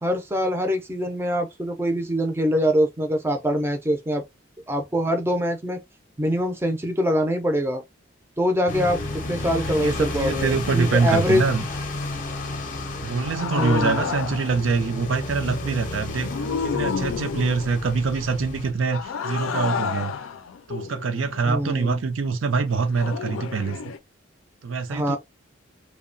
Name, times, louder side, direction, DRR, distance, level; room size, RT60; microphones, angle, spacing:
voice 1, 0.0-4.2 4.7-5.8 6.2-7.8 8.4-9.0 9.3-11.4 13.5-14.1 21.4-22.0 24.9-25.2, equal, 10° right, 0.4 m, -24 dB
sound 1, 8.7-18.7, left 2 dB, 40° left, 0.6 m, -32 dB
voice 2, 9.7-11.6 13.0-16.3 16.6-20.1 20.7-23.8 24.6-25.2, right 4 dB, 80° right, 0.5 m, -24 dB
sound 2, 13.2-14.6 16.1-17.8 18.9-21.6 23.0-24.0, left 6 dB, 90° left, 0.4 m, -30 dB
2.7 x 2.1 x 2.5 m
head